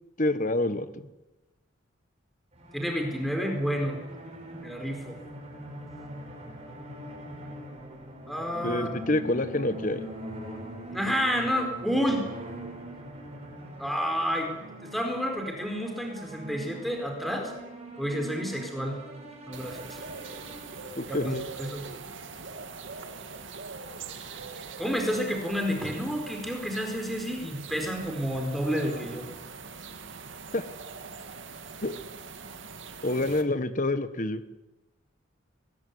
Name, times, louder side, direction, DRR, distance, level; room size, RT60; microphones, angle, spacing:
voice 1, 0.2-0.9 8.6-10.0 21.0-21.5 30.5-30.6 31.8-32.0 33.0-34.4, left 2 dB, 40° left, 11 dB, 1.4 m, -27 dB
sound 1, 2.5-21.3, right 1 dB, 30° right, 6.2 m, -42 dB
voice 2, 2.7-4.0 4.6-5.1 8.3-8.9 10.9-12.3 13.8-14.5 14.8-17.5 18.0-19.0 19.5-20.0 21.1-21.3 21.6-21.8 24.8-29.2, equal, ahead, 3 dB, 4.4 m, -30 dB
sound 2, 19.5-33.4, right 4 dB, 70° right, 2.3 m, -42 dB
22.5 x 20.0 x 9.6 m, 1.0 s
head